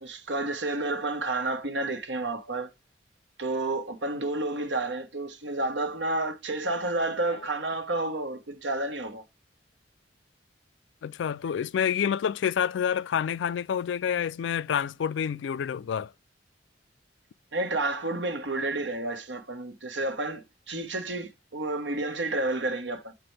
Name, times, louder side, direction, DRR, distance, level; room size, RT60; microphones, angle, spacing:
voice 1, 0.0-2.7 3.4-9.2 17.5-23.1, right 2 dB, 85° right, 1.3 m, -30 dB
voice 2, 11.0-16.1, left 8 dB, 85° left, 0.3 m, -28 dB
7.7 x 5.9 x 3.3 m
head